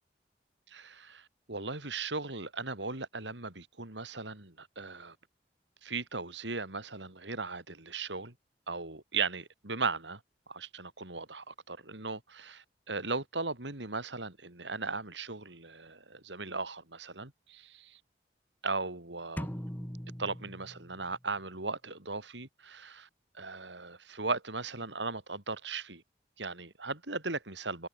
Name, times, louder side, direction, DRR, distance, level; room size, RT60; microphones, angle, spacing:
voice 1, 0.7-5.2 5.8-8.3 8.7-10.2 10.5-18.0 18.6-19.5 20.2-23.1 23.3-26.0 26.4-27.9, right 4 dB, 80° right, 4.0 m, -37 dB
sound 1, 19.4-21.3, equal, 10° left, 6.1 m, -41 dB
head